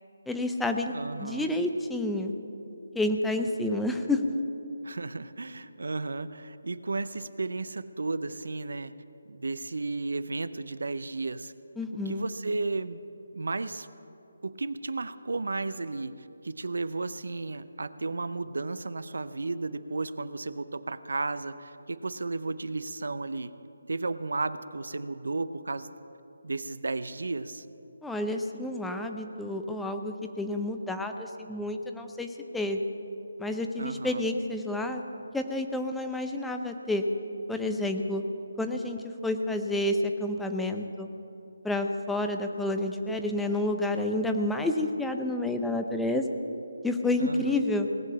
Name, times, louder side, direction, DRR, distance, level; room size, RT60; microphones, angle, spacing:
voice 1, 0.3-0.9 1.2-2.3 2.9-4.2 11.8-12.3 28.0-32.8 33.4-35.0 35.3-37.0 37.5-38.2 38.6-41.1 41.6-46.3 46.8-47.9, left 1 dB, 5° left, 5 dB, 0.5 m, -29 dB
voice 2, 0.9-1.5 4.8-8.9 9.3-11.5 12.1-13.0 13.3-13.9 14.4-23.5 23.9-25.9 26.4-27.7 33.8-34.3 47.2-47.6, right 3 dB, 70° right, 14 dB, 0.5 m, -33 dB
18.5 x 6.5 x 8.4 m, 2.8 s
figure-of-eight pair, 155°, 0 cm